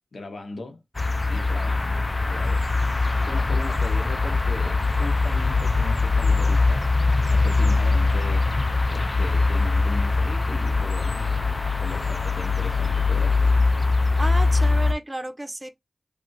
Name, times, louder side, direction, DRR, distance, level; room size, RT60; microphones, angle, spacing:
voice 1, 0.1-0.8 1.3-2.7 3.0-6.9 7.2-13.6, left 2 dB, 90° left, 0.8 m, -38 dB
sound 1, 1.0-14.9, left 3 dB, 40° left, 0.4 m, -22 dB
voice 2, 14.2-15.7, right 1 dB, 20° right, 0.7 m, -32 dB
3.4 x 2.6 x 2.3 m
cardioid pair, 45°, 0 cm